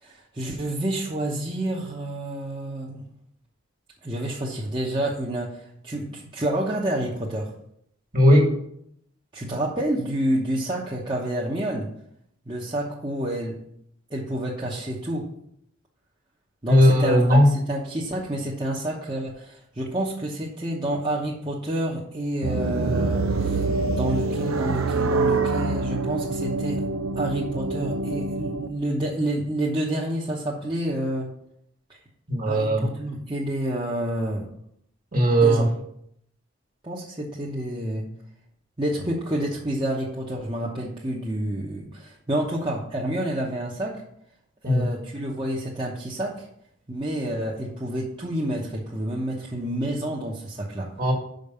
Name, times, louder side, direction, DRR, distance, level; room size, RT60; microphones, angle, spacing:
voice 1, 0.0-3.1 4.0-7.5 9.3-11.9 12.5-13.6 14.1-15.3 16.6-23.6 23.9-26.8 27.1-31.3 31.9-32.0 32.4-34.5 35.4-35.7 36.8-38.1 38.8-44.0 44.6-46.5 46.9-50.9, right 1 dB, 25° right, -4 dB, 1.0 m, -29 dB
voice 2, 8.1-8.5 16.7-17.5 32.3-32.9 35.1-35.7 44.6-44.9 51.0-51.1, equal, 40° right, 2 dB, 1.8 m, -17 dB
sound 1, 22.4-28.7, right 3 dB, 85° right, 0.7 m, -25 dB
6.0 x 5.2 x 6.8 m, 0.71 s
head